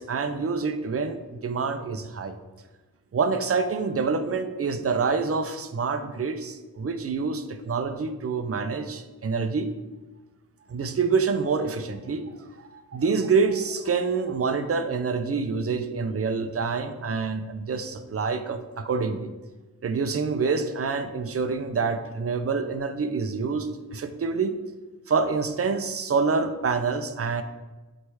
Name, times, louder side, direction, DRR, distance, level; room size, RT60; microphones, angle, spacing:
voice 1, 0.0-2.3 3.1-9.7 10.7-19.3 19.8-24.5 25.1-27.4, right 5 dB, 40° right, 9 dB, 0.5 m, -27 dB
7.9 x 3.2 x 4.7 m, 1.2 s
wide cardioid pair, 150°, 35 cm